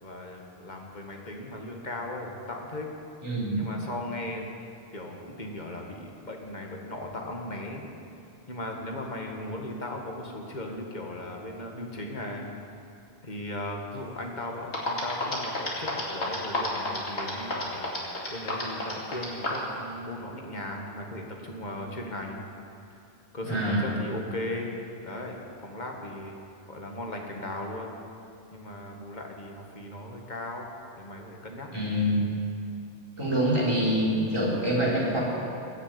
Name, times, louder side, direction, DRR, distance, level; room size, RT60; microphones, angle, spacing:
voice 1, 0.0-2.9 3.6-4.5 4.9-7.9 8.5-12.5 13.2-17.9 18.3-22.4 23.3-24.7 25.0-26.4 26.7-28.0 28.5-30.7 31.0-31.7, left 1 dB, 45° left, 1 dB, 1.9 m, -37 dB
voice 2, 3.2-3.6 23.4-23.9 31.7-32.3 33.2-35.2, equal, 25° right, -6 dB, 4.3 m, -25 dB
sound 1, 14.4-14.5 14.7-19.7, left 1 dB, 80° left, 2.8 m, -30 dB
21.0 x 7.3 x 8.7 m, 2.6 s
omnidirectional pair, 1.1 m